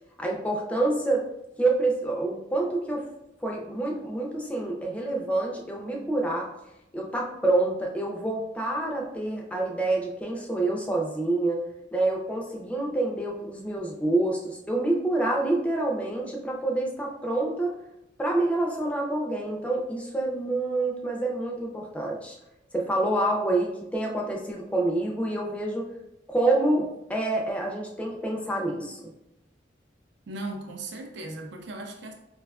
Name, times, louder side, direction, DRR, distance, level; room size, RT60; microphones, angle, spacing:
voice 1, 0.2-1.2 1.6-3.1 3.4-6.5 6.9-11.6 11.9-17.7 18.2-22.4 22.7-25.9 26.3-26.8 27.1-29.1, right 2 dB, 5° left, 0 dB, 0.4 m, -27 dB
voice 2, 30.3-32.1, right 2 dB, 60° right, 4 dB, 0.4 m, -37 dB
4.6 x 2.2 x 2.3 m, 0.88 s
head